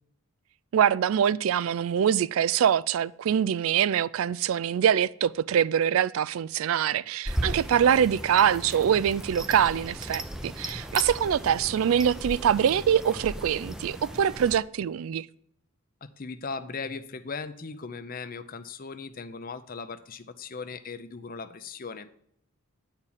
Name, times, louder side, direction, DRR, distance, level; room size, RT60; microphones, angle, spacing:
voice 1, 0.7-15.3, right 8 dB, 70° right, 0.3 m, -24 dB
sound 1, 7.3-14.6, equal, 5° right, 0.6 m, -36 dB
voice 2, 16.2-22.1, left 4 dB, 40° left, 0.6 m, -38 dB
9.6 x 4.4 x 7.2 m
head